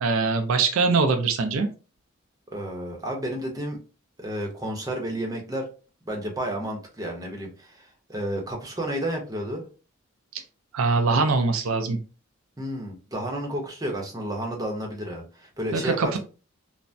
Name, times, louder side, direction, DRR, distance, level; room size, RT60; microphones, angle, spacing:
voice 1, 0.0-1.7 10.7-12.0 15.7-16.2, right 4 dB, 70° right, 6 dB, 0.4 m, -22 dB
voice 2, 2.5-3.8 4.2-5.7 6.0-9.7 12.6-16.2, right 1 dB, 20° right, 0 dB, 0.7 m, -31 dB
3.3 x 2.1 x 2.5 m, 0.34 s
head